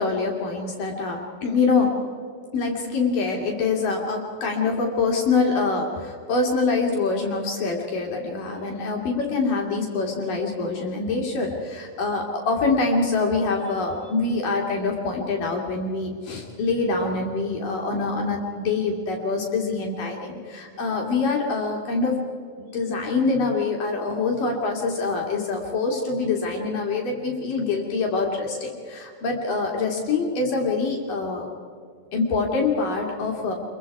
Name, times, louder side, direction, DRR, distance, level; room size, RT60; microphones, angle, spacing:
voice 1, 0.0-1.9 2.5-22.1 22.6-31.5 32.1-33.5, left 4 dB, 55° left, 0 dB, 3.8 m, -25 dB
27.5 x 23.0 x 4.8 m, 2.2 s
omnidirectional pair, 4.9 m